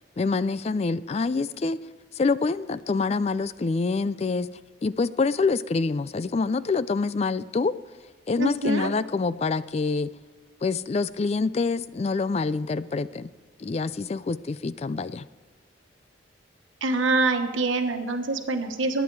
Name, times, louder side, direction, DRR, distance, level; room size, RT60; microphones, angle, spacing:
voice 1, 0.2-1.8 2.2-4.5 4.8-7.7 8.3-10.1 10.6-13.3 13.6-15.2, left 4 dB, 35° left, 16 dB, 0.3 m, -26 dB
voice 2, 8.4-8.9 16.8-19.0, right 3 dB, 85° right, 6 dB, 1.2 m, -25 dB
20.0 x 9.2 x 4.7 m, 1.4 s
head